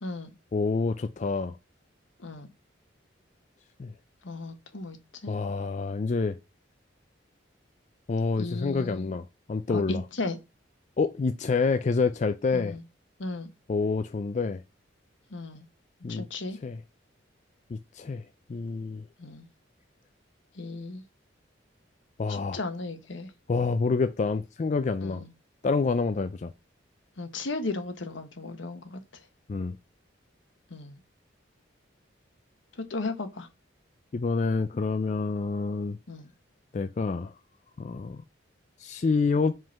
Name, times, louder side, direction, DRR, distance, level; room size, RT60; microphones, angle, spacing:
voice 1, 0.0-0.3 2.2-2.5 4.2-5.0 5.2-5.4 8.4-9.1 9.7-10.4 12.5-12.8 13.2-13.5 15.3-15.7 16.1-16.6 19.2-19.5 20.5-21.0 22.3-23.3 25.0-25.3 27.2-29.0 30.7-31.0 32.8-33.5 36.1-36.3, left 3 dB, 80° left, 1.1 m, -35 dB
voice 2, 0.5-1.6 3.8-3.9 5.3-6.4 8.1-10.0 11.0-12.7 13.7-14.6 16.0-16.2 16.6-16.8 17.7-18.2 18.5-19.0 22.2-22.6 23.5-25.2 25.6-26.5 29.5-29.8 34.1-36.0 36.7-37.3 37.8-38.2 38.8-39.6, left 4 dB, 40° left, 0.3 m, -27 dB
5.2 x 3.8 x 5.7 m
head